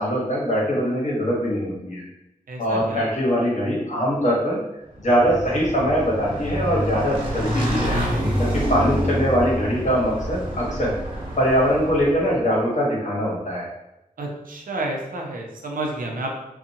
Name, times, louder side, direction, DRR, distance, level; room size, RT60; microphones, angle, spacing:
voice 1, 0.0-2.0 2.6-4.6 5.0-8.0 8.4-10.9 11.4-13.7, equal, 55° left, -4 dB, 1.0 m, -22 dB
voice 2, 2.5-3.1 14.2-16.3, right 2 dB, 75° right, 0 dB, 0.5 m, -30 dB
Motorcycle / Engine, 5.0-12.4, equal, 40° right, 1.1 m, -27 dB
2.6 x 2.3 x 2.7 m, 0.90 s
wide cardioid pair, 60°, 14 cm